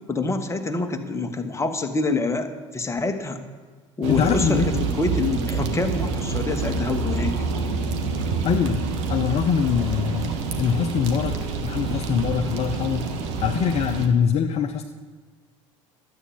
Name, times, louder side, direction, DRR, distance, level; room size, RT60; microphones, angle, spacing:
voice 1, 0.1-3.4 4.0-7.3, left 3 dB, 15° left, 6 dB, 1.5 m, -26 dB
sound 1, 4.0-14.1, right 4 dB, 65° right, 1.4 m, -27 dB
voice 2, 4.1-4.8 8.4-8.8 9.1-10.3 10.6-13.1 13.4-14.9, left 7 dB, 40° left, 5 dB, 0.8 m, -23 dB
12.5 x 8.4 x 7.5 m, 1.5 s
figure-of-eight pair, 65°, 16 cm